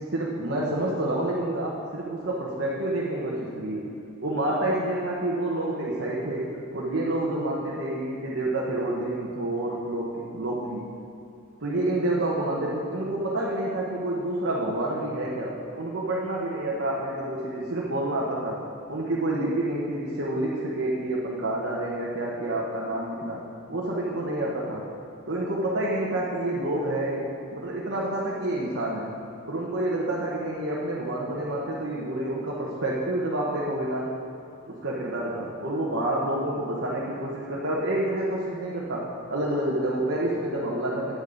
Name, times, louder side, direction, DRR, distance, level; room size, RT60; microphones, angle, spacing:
voice 1, 0.0-3.9 4.2-10.9 11.6-24.9 25.3-29.1 29.5-34.2 34.7-41.1, right 1 dB, 55° right, -5 dB, 1.1 m, -28 dB
9.7 x 8.9 x 4.0 m, 2.6 s
head